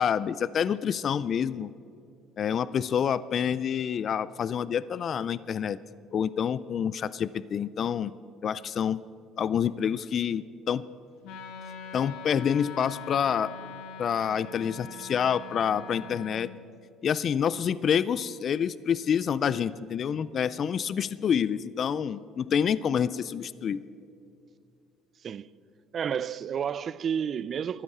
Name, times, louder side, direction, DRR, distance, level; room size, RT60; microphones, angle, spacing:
voice 1, 0.0-1.7 2.4-5.8 6.1-8.1 8.4-9.0 9.4-10.8 11.9-13.5 14.0-16.5 17.0-23.8, left 8 dB, 45° left, 0.3 m, -27 dB
Wind instrument woodwind instrument, 11.2-16.4, left 5 dB, 80° left, 1.5 m, -42 dB
voice 2, 25.9-27.8, right 8 dB, 40° right, 0.4 m, -31 dB
15.0 x 12.5 x 4.8 m
cardioid pair, 115°, 0 cm